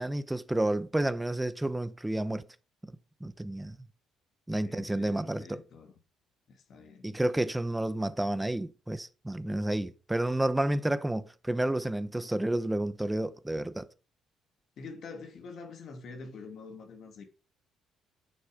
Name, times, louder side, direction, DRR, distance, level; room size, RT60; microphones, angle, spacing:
voice 1, 0.0-2.4 3.2-3.8 4.5-5.6 7.0-13.9, right 1 dB, 10° right, 1.0 m, -30 dB
voice 2, 4.6-5.9 6.5-7.1 14.8-17.2, left 4 dB, 60° left, 2.8 m, -46 dB
11.5 x 6.7 x 5.2 m
cardioid pair, 80°, 0 cm